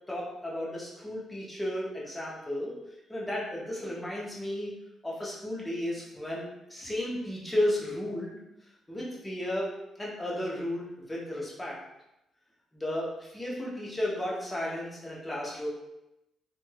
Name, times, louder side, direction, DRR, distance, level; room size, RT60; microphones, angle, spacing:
voice 1, 0.1-2.8 3.1-4.7 5.0-8.3 8.9-9.7 10.0-11.8 12.7-15.7, left 1 dB, 10° left, -5 dB, 0.9 m, -33 dB
3.2 x 2.5 x 2.2 m, 0.88 s
cardioid pair, 90°, 0 cm